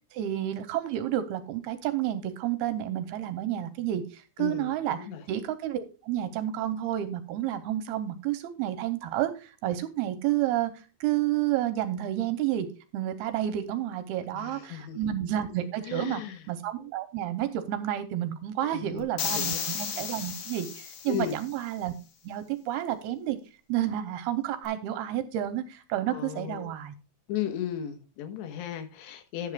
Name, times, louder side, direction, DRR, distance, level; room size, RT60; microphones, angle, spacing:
voice 1, 0.1-12.7 12.9-16.2 16.5-21.9 22.2-23.4 23.7-27.0, right 12 dB, 80° right, 10 dB, 2.6 m, -30 dB
voice 2, 4.4-5.2 14.3-15.1 15.9-16.4 18.6-19.6 21.1-21.4 26.1-26.7 27.3-29.5, left 10 dB, 80° left, 8 dB, 3.4 m, -35 dB
sound 1, 19.2-21.5, left 7 dB, 60° left, 1.8 m, -33 dB
11.0 x 11.0 x 2.4 m, 0.33 s
omnidirectional pair, 4.9 m